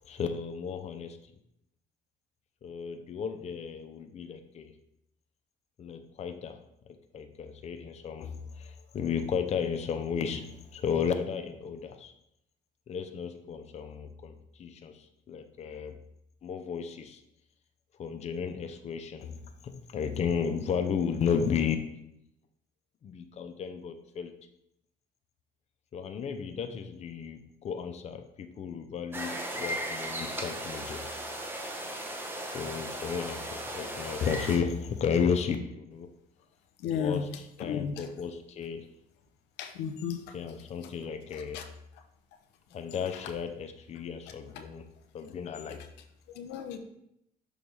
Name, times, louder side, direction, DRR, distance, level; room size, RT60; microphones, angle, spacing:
voice 1, 0.1-1.2 2.6-4.7 5.8-6.6 6.9-12.1 12.9-14.3 14.6-15.0 15.3-16.0 16.4-17.2 18.0-21.9 23.0-24.3 25.9-31.0 32.5-36.1 36.9-37.3 37.6-38.9 40.3-41.6 42.7-44.8 45.1-45.9, left 6 dB, 40° left, 7 dB, 0.6 m, -33 dB
sound 1, 29.1-34.6, right 1 dB, 15° right, 1.0 m, -36 dB
voice 2, 36.8-37.3 37.6-38.1 39.6-40.4 40.8-40.9 41.3-41.7 43.1-43.2 44.3-44.6 46.3-46.8, left 7 dB, 90° left, 6 dB, 0.8 m, -35 dB
6.2 x 3.4 x 5.3 m, 0.77 s
cardioid pair, 110°, 17 cm